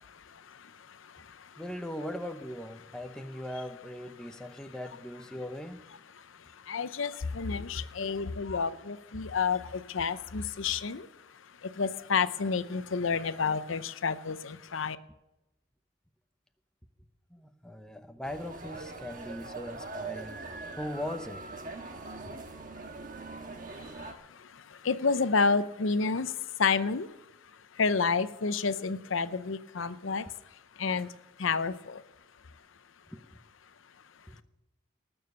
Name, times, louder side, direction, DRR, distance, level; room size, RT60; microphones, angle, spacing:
voice 1, 1.6-5.8 17.3-20.4 20.8-21.4 33.1-33.2 34.3-34.4, left 1 dB, 5° left, 6 dB, 0.8 m, -39 dB
voice 2, 6.7-11.1 11.8-15.0 24.8-26.3 26.6-27.1 27.8-30.2 30.8-31.1 31.4-32.0, left 5 dB, 80° left, 13 dB, 0.7 m, -29 dB
sound 1, 18.2-24.1, right 3 dB, 40° right, 1.4 m, -42 dB
19.5 x 7.1 x 6.8 m, 0.97 s
head